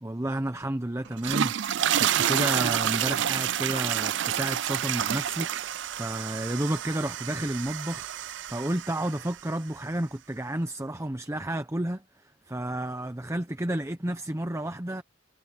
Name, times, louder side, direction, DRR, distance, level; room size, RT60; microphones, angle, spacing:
voice 1, 0.0-1.5 2.0-15.0, right 1 dB, 15° right, 0.9 m, -31 dB
sound 1, 1.1-9.4, right 10 dB, 70° right, 0.4 m, -29 dB
head